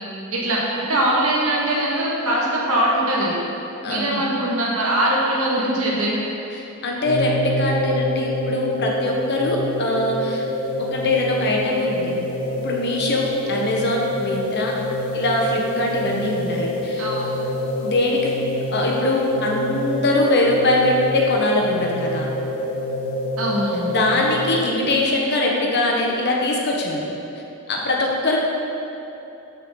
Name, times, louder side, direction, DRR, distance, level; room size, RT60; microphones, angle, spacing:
voice 1, 0.3-3.4 3.9-6.2 17.0-17.2 23.4-23.9, right 1 dB, 70° right, -5 dB, 2.2 m, -22 dB
voice 2, 3.8-4.3 6.5-10.4 10.8-12.1 12.6-14.7 15.1-17.0 17.8-18.3 18.7-22.3 23.9-27.0 27.7-28.4, left 1 dB, 50° left, -1 dB, 1.4 m, -22 dB
sound 1, 7.0-24.6, left 1 dB, 85° left, 1.6 m, -26 dB
13.0 x 6.6 x 4.1 m, 3.0 s
head